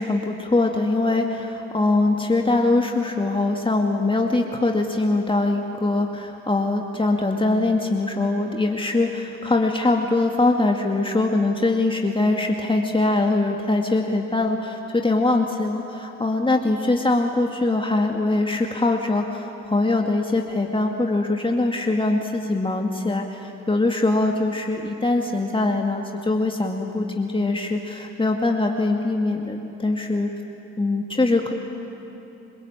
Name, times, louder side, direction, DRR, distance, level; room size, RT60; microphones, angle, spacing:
voice 1, 0.0-30.3 30.8-31.5, left 2 dB, 15° left, 2 dB, 2.2 m, -22 dB
27.5 x 22.0 x 8.9 m, 3.0 s
hypercardioid pair, 55°, 32 cm